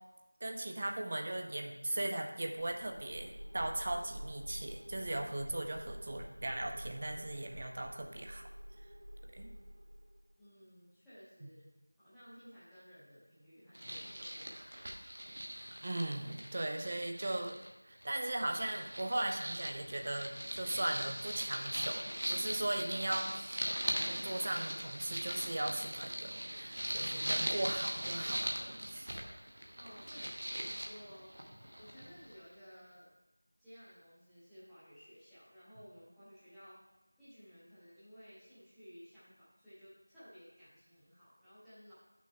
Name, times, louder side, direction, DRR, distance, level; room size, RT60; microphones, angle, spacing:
voice 1, 0.4-8.5 9.3-9.5 15.8-17.6 17.8-23.7 24.0-29.2, right 1 dB, 15° right, 3 dB, 0.4 m, -38 dB
sound 1, 2.6-10.3, equal, 65° right, 2.5 m, -49 dB
voice 2, 10.4-11.6 12.0-15.1 29.8-31.3 31.8-33.1 33.6-36.8 37.2-41.9, equal, ahead, -20 dB, 0.8 m, -56 dB
sound 2, 13.7-17.7 18.0-32.4, equal, 35° right, 1.0 m, -40 dB
10.0 x 6.0 x 3.4 m, 1.0 s
figure-of-eight pair, 175°, 0 cm